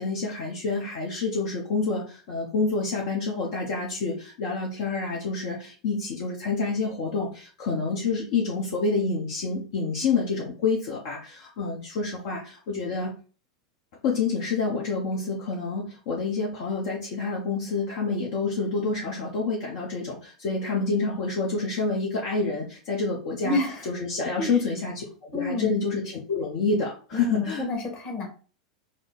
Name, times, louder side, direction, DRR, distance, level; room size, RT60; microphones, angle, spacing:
voice 1, 0.0-13.1 14.0-23.6 23.9-27.7, left 4 dB, 55° left, -3 dB, 0.9 m, -28 dB
voice 2, 23.4-23.9 24.4-24.5 25.3-25.8 27.1-28.3, left 2 dB, 40° left, 2 dB, 1.4 m, -29 dB
3.6 x 2.1 x 3.8 m, 0.37 s
hypercardioid pair, 90°, 3 cm